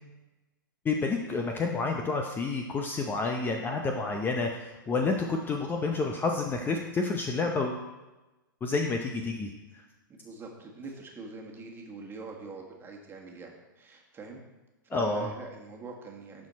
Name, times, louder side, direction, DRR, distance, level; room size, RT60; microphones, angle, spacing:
voice 1, 0.8-7.8 8.6-9.8 14.9-15.3, left 3 dB, 20° left, 3 dB, 0.7 m, -29 dB
voice 2, 10.1-14.4 14.9-16.5, right 3 dB, 20° right, 0 dB, 1.6 m, -43 dB
12.0 x 4.4 x 4.2 m, 1.1 s
hypercardioid pair, 110°, 11 cm